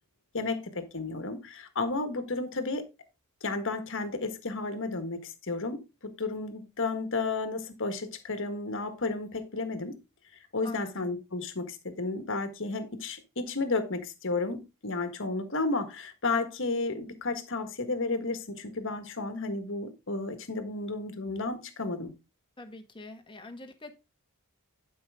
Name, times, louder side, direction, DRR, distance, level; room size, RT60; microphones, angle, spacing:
voice 1, 0.3-2.8 3.4-9.9 10.5-22.1, left 3 dB, 60° left, 1.6 m, -32 dB
voice 2, 10.6-11.1 22.6-23.9, left 2 dB, 20° left, 1.6 m, -45 dB
11.5 x 5.6 x 3.7 m
head